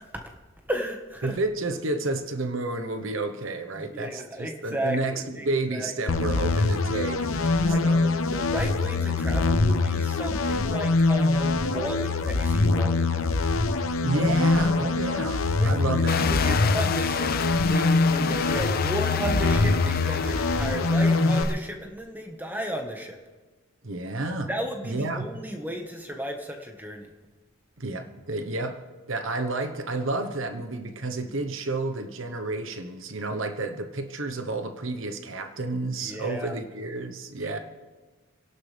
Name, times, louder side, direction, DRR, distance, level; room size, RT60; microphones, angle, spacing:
voice 1, 0.7-1.3 3.8-5.9 7.6-8.0 8.3-13.1 15.6-23.2 24.5-27.1 36.0-36.5 37.4-37.6, equal, 10° right, 3 dB, 1.4 m, -34 dB
voice 2, 1.2-7.3 7.7-8.1 14.0-16.6 23.8-24.5 24.8-25.4 27.8-37.6, right 2 dB, 60° right, 8 dB, 1.1 m, -31 dB
sound 1, 6.1-21.4, left 3 dB, 70° left, 0.9 m, -24 dB
sound 2, 16.1-21.5, left 6 dB, 40° left, 0.6 m, -31 dB
29.0 x 11.5 x 3.4 m, 1.3 s
head